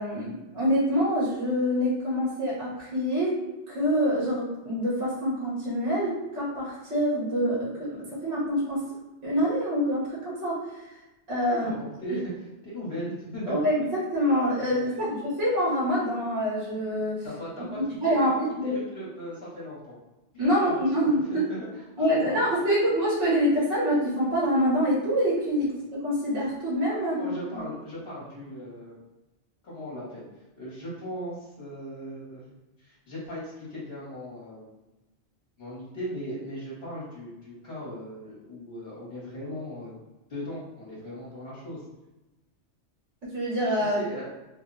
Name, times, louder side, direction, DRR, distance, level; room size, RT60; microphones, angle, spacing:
voice 1, 0.0-3.4 3.7-8.8 9.2-10.8 11.3-11.7 12.1-12.2 13.5-17.2 17.7-18.7 20.4-21.4 22.0-27.6 43.3-44.0, equal, 80° right, -7 dB, 1.5 m, -26 dB
voice 2, 11.5-12.3 12.6-13.5 14.9-15.0 17.2-18.1 18.6-20.0 20.3-22.1 22.7-22.8 25.6-25.7 26.9-28.9 29.6-30.2 30.6-32.5 32.8-34.6 35.6-39.9 40.3-41.8 43.8-44.2, equal, 55° left, -8 dB, 1.3 m, -38 dB
3.2 x 2.1 x 3.7 m, 1.0 s
omnidirectional pair, 1.2 m